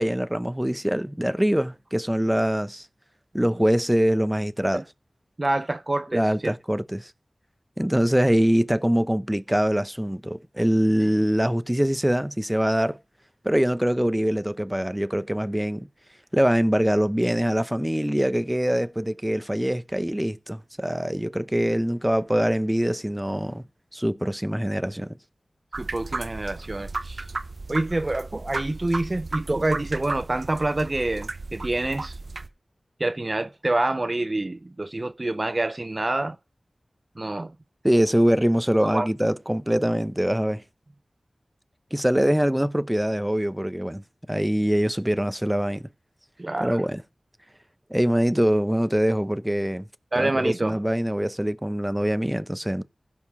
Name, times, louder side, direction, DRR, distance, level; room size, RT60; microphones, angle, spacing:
voice 1, 0.0-2.9 3.3-4.8 6.1-7.1 7.8-13.0 13.4-15.9 16.3-23.6 23.9-25.2 37.8-40.6 41.9-44.0 44.3-45.8 46.6-47.0 47.9-49.9 50.2-52.8, equal, 10° right, 0.8 m, -23 dB
voice 2, 5.4-6.5 25.8-27.2 27.7-32.2 33.0-36.4 37.2-37.5 38.8-39.1 46.4-46.8 50.1-50.8, right 2 dB, 40° right, 0.5 m, -27 dB
sound 1, 25.7-32.5, right 3 dB, 70° right, 0.9 m, -34 dB
16.0 x 5.4 x 6.0 m
cardioid pair, 45°, 0 cm